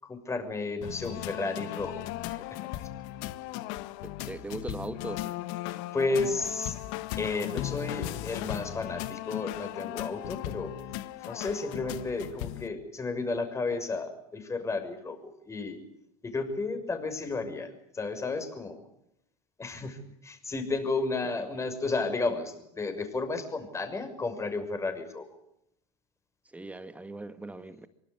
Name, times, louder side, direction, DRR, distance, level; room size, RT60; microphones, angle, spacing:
voice 1, 0.0-2.4 5.7-6.8 7.2-10.8 11.2-15.8 16.2-18.8 19.6-25.3, left 3 dB, 15° left, 6.3 m, -33 dB
sound 1, 0.8-12.7, left 15 dB, 60° left, 1.5 m, -37 dB
voice 2, 4.0-5.3 21.4-21.5 26.5-27.9, right 2 dB, 10° right, 1.6 m, -39 dB
24.5 x 23.5 x 8.3 m
supercardioid pair, 125°, 17 cm